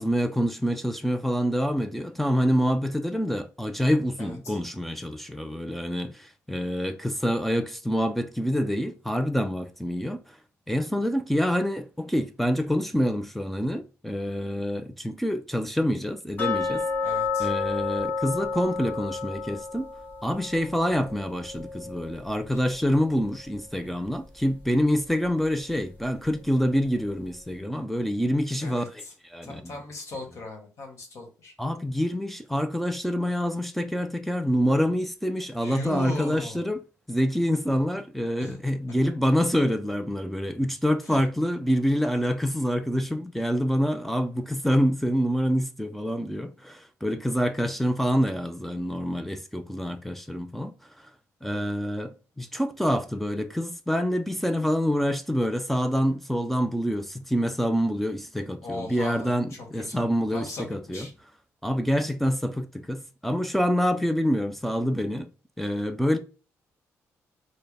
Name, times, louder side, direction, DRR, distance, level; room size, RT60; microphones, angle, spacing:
voice 1, 0.0-10.4 10.7-16.8 17.4-19.9 20.2-29.8 31.6-36.8 37.1-51.1 51.4-61.1 61.6-65.3 65.6-66.2, equal, 5° left, 0.4 m, -26 dB
voice 2, 4.2-4.6 17.0-17.5 22.5-22.6 28.6-29.1 29.4-31.5 35.6-36.6 38.4-38.6 38.9-39.0 41.0-41.2 58.6-61.1, left 2 dB, 55° left, 1.4 m, -38 dB
sound 1, 16.4-23.2 23.5-23.6 24.1-24.2 24.8-24.9, left 5 dB, 30° left, 1.6 m, -31 dB
4.4 x 2.1 x 3.4 m
cardioid pair, 105°, 6 cm